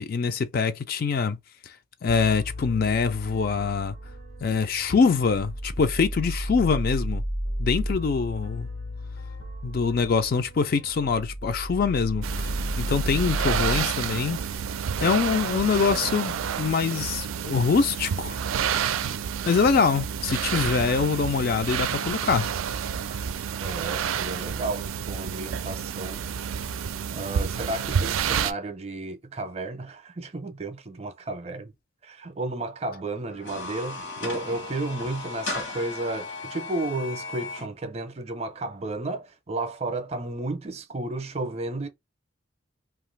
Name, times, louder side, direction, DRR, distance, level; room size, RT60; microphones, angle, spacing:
voice 1, 0.0-1.4 1.7-1.8 2.0-3.9 4.4-7.2 7.6-8.7 9.6-14.4 15.0-18.4 19.5-22.5, left 5 dB, 45° left, 0.3 m, -24 dB
sound 1, 2.1-13.8, equal, 90° left, 1.3 m, -33 dB
sound 2, 12.2-28.5, right 7 dB, 90° right, 0.4 m, -29 dB
voice 2, 23.6-26.2 27.1-31.7 32.0-41.9, right 2 dB, 30° right, 0.5 m, -33 dB
sound 3, 33.3-37.7, left 3 dB, 65° left, 1.1 m, -36 dB
2.8 x 2.4 x 3.1 m
head